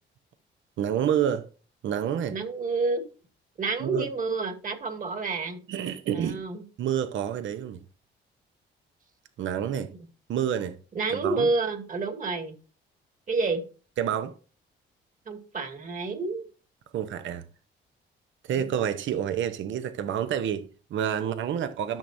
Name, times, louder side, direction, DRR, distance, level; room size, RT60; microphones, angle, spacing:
voice 1, 0.8-1.5 1.8-2.4 3.8-4.1 5.7-6.4 6.8-7.8 9.4-9.9 10.3-10.8 11.1-11.5 14.0-14.3 16.9-17.5 18.4-22.0, right 9 dB, 75° right, 0.9 m, -28 dB
voice 2, 2.3-3.0 3.6-5.6 6.1-6.6 10.9-12.5 13.3-13.6 15.3-16.5, right 3 dB, 40° right, 2.2 m, -29 dB
12.0 x 6.3 x 2.7 m
cardioid pair, 90°, 20 cm